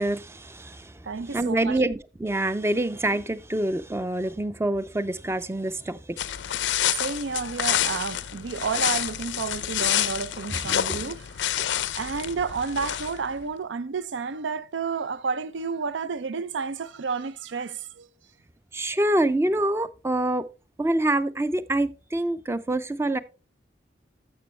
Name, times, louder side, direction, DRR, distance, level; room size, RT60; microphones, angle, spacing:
voice 1, 0.0-6.2 10.5-11.0 18.7-20.5 20.8-23.2, right 1 dB, 15° right, 0.4 m, -26 dB
voice 2, 1.0-1.8 7.0-11.6 11.9-18.1, right 5 dB, 90° right, 0.5 m, -31 dB
sound 1, 6.2-13.3, left 11 dB, 90° left, 0.5 m, -28 dB
12.5 x 6.8 x 3.2 m
head